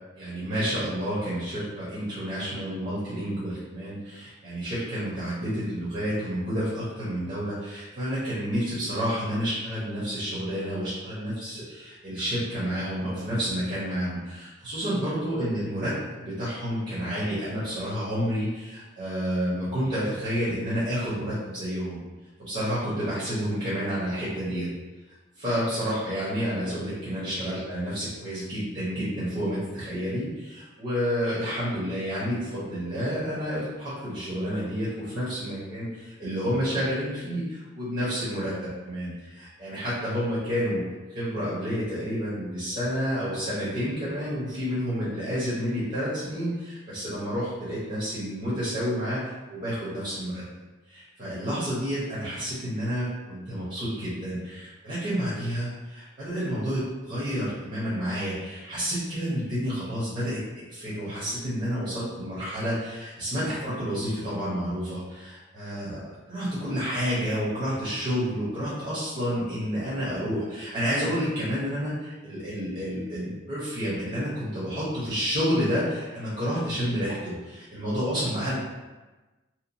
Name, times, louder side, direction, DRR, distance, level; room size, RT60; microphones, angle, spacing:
voice 1, 0.1-22.0 22.4-24.7 25.4-40.8 41.1-50.4 50.9-66.0 66.3-78.7, equal, 40° right, -10 dB, 0.9 m, -30 dB
2.9 x 2.2 x 2.6 m, 1.2 s
head